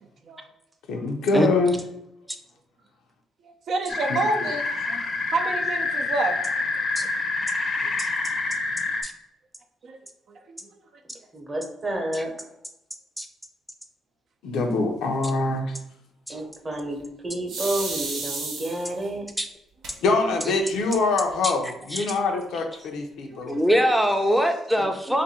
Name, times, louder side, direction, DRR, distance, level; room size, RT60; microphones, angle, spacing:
voice 1, 0.0-0.4 3.4-5.0 5.3-6.4 7.8-7.9 9.8-10.0 10.3-10.6 23.2-23.6, right 3 dB, 60° right, 4 dB, 0.5 m, -29 dB
voice 2, 0.9-1.8 4.1-4.2 14.4-15.8 20.0-23.6, left 3 dB, 85° left, 3 dB, 0.6 m, -24 dB
sound 1, 3.9-9.0, left 3 dB, 45° left, 0.6 m, -27 dB
voice 3, 11.3-12.3 16.3-19.3 24.8-25.2, right 1 dB, 25° right, 1 dB, 0.9 m, -30 dB
sound 2, 17.5-19.1 19.8-19.9 20.3-20.4 20.7-21.3, right 3 dB, 85° right, 0.9 m, -32 dB
voice 4, 23.5-25.2, equal, 5° right, 5 dB, 0.5 m, -22 dB
2.6 x 2.5 x 4.1 m, 0.83 s
cardioid pair, 90°, 0 cm